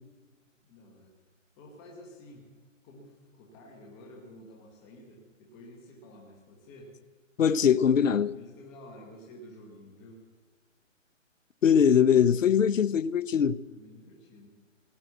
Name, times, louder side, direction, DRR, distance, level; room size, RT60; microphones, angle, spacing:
voice 1, 0.6-1.1 1.6-2.4 2.8-6.9 8.3-10.2 13.7-14.5, left 1 dB, 10° left, 0.8 m, -50 dB
voice 2, 7.4-8.3 11.6-13.6, left 8 dB, 75° left, 0.7 m, -22 dB
17.0 x 9.0 x 8.0 m
hypercardioid pair, 160°, 39 cm